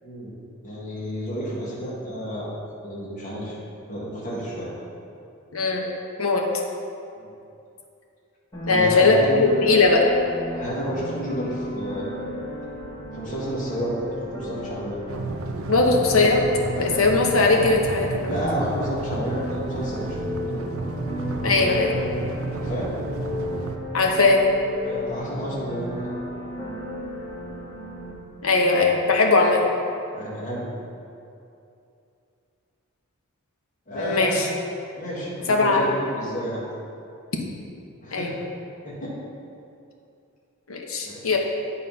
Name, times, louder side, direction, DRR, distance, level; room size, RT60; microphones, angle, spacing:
voice 1, 0.0-0.3 0.6-2.5 2.8-3.6 3.9-4.7 7.2-7.3 8.7-9.4 10.5-12.2 13.1-14.0 14.3-15.0 18.3-20.2 20.5-20.6 22.5-22.9 24.8-26.2 30.1-30.6 33.9-34.3 35.0-36.6 38.0-38.4 38.8-39.1 41.0-41.3, equal, 40° left, -7 dB, 1.9 m, -31 dB
voice 2, 5.5-5.9 6.2-6.4 8.7-10.1 15.7-16.5 16.8-18.2 21.4-22.0 23.9-24.4 28.4-29.6 33.9-34.5 35.5-35.9 38.1-38.3 40.7-41.4, left 3 dB, 75° left, 1 dB, 1.0 m, -19 dB
sound 1, 8.5-28.1, equal, 20° left, 1.6 m, -35 dB
sound 2, 15.1-23.8, right 3 dB, 80° right, 0.5 m, -31 dB
sound 3, 19.8-20.9 21.3-22.4 22.8-23.9 24.3-25.4, left 5 dB, 20° right, 1.5 m, -35 dB
9.6 x 4.2 x 5.4 m, 2.6 s
head